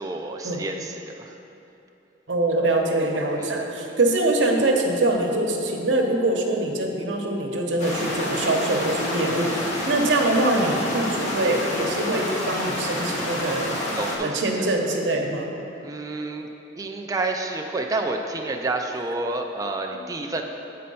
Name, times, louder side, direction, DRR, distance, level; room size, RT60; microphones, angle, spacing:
voice 1, 0.0-1.4 3.4-3.5 9.8-9.9 13.9-14.3 14.6-14.7 15.8-16.5 16.8-20.4, right 2 dB, 20° right, 2 dB, 0.3 m, -29 dB
voice 2, 2.3-13.8 14.2-15.5 19.9-20.1, right 2 dB, 85° right, 1 dB, 0.9 m, -24 dB
sound 1, 7.8-14.2, left 1 dB, 40° left, 1.3 m, -28 dB
8.4 x 4.3 x 5.4 m, 2.9 s
head